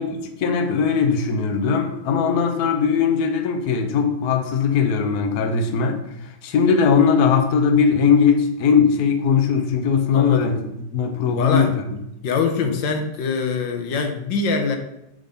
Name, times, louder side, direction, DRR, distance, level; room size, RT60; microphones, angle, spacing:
voice 1, 0.0-10.6 10.9-11.7, left 6 dB, 60° left, 1.2 m, -19 dB
voice 2, 10.1-10.5 11.3-11.7 12.2-14.8, left 5 dB, 75° left, 1.5 m, -23 dB
8.8 x 3.8 x 5.2 m
omnidirectional pair, 2.1 m